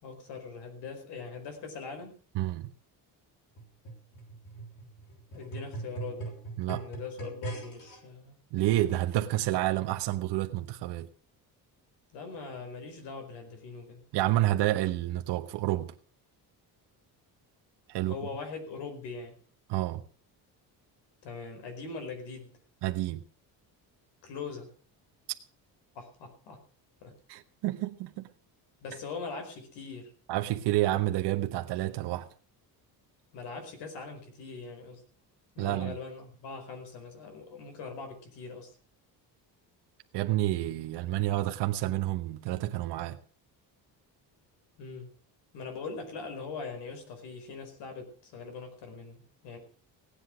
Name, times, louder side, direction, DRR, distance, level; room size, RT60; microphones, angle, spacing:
voice 1, 0.0-2.2 5.3-6.4 6.7-8.4 12.1-14.0 18.0-19.4 21.2-22.6 24.2-24.7 25.9-26.6 27.0-27.1 28.8-30.1 33.3-35.0 35.5-38.7 44.8-45.1 45.5-49.6, left 4 dB, 85° left, 4.9 m, -41 dB
voice 2, 2.3-2.7 6.6-6.9 8.5-11.1 14.1-15.9 17.9-18.1 19.7-20.0 22.8-23.2 27.3-28.3 30.3-32.3 35.6-36.0 40.1-43.2, right 15 dB, 80° right, 1.1 m, -29 dB
sound 1, 3.6-8.0 8.7-8.8, right 3 dB, 50° left, 6.4 m, -41 dB
16.5 x 10.0 x 6.1 m
cardioid pair, 150°, 40 cm